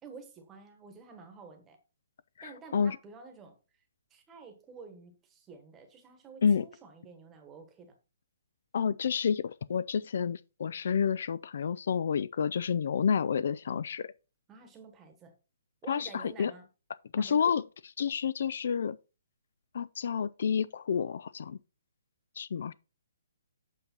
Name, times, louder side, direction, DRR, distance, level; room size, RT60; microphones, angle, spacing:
voice 1, 0.0-1.8 2.4-3.6 4.1-8.0 14.5-15.3 15.8-16.7 17.2-17.6, right 5 dB, 10° right, 1.2 m, -50 dB
voice 2, 2.4-3.0 6.4-6.7 8.7-14.1 15.9-16.5 17.1-17.6 18.0-19.0 19.7-21.6 22.4-22.7, left 7 dB, 50° left, 0.3 m, -29 dB
8.1 x 5.3 x 4.4 m
hypercardioid pair, 175°, 0 cm